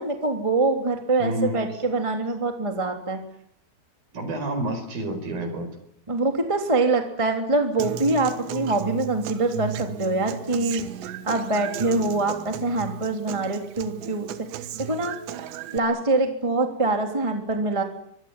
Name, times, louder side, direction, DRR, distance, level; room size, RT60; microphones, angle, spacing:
voice 1, 0.0-3.2 6.1-15.5 15.7-17.8, right 2 dB, 10° right, 4 dB, 2.5 m, -24 dB
voice 2, 1.2-1.8 4.1-5.7, right 1 dB, 55° right, 8 dB, 6.6 m, -29 dB
Human voice / Acoustic guitar, 7.8-15.8, right 9 dB, 80° right, 3.6 m, -35 dB
25.0 x 21.0 x 9.8 m, 0.73 s
omnidirectional pair, 5.0 m